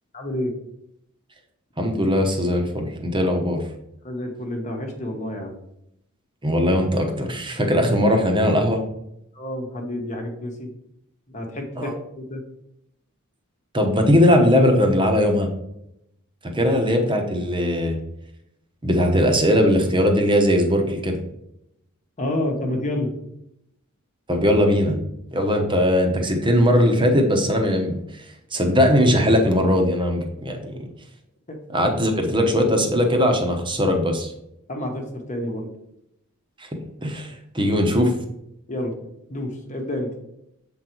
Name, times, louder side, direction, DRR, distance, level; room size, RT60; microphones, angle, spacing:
voice 1, 0.1-0.5 4.0-5.5 9.3-10.7 11.3-12.4 22.2-23.1 31.5-31.6 34.7-35.7 38.7-38.9 39.3-40.1, left 1 dB, 35° left, 2 dB, 1.1 m, -29 dB
voice 2, 1.8-3.6 6.4-8.8 11.8-11.9 13.7-15.5 16.4-18.0 18.8-21.2 24.3-25.0 25.3-30.9 31.7-34.3 36.6-38.1, equal, 20° right, 3 dB, 0.9 m, -20 dB
7.1 x 3.9 x 4.5 m, 0.80 s
head